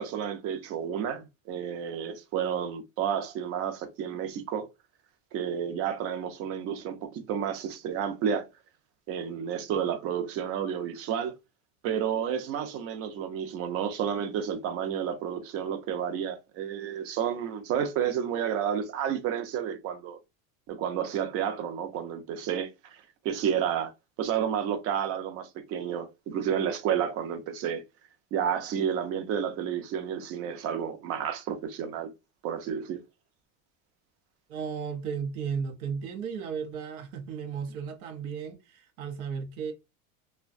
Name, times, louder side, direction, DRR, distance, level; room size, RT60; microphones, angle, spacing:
voice 1, 0.0-4.7 5.3-8.5 9.1-11.3 11.8-20.2 20.7-23.9 24.2-27.8 28.3-32.1 32.4-33.0, right 8 dB, 35° right, 0.5 m, -31 dB
voice 2, 34.5-39.7, right 6 dB, 80° right, 0.7 m, -34 dB
2.5 x 2.2 x 2.4 m
supercardioid pair, 140°, 41 cm